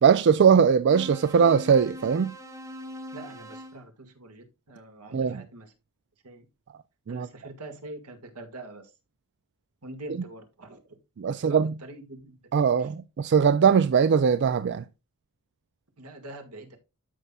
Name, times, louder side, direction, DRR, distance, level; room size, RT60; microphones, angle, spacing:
voice 1, 0.0-2.3 5.1-5.4 7.1-7.3 11.2-11.7 12.5-14.8, right 6 dB, 50° right, 0.4 m, -20 dB
sound 1, 0.9-3.8, equal, 15° right, 1.4 m, -41 dB
voice 2, 3.1-5.7 6.2-6.5 7.1-8.9 9.8-11.0 11.3-12.4 12.8-12.9 16.0-16.8, right 2 dB, 85° right, 1.9 m, -44 dB
13.0 x 5.6 x 2.3 m
head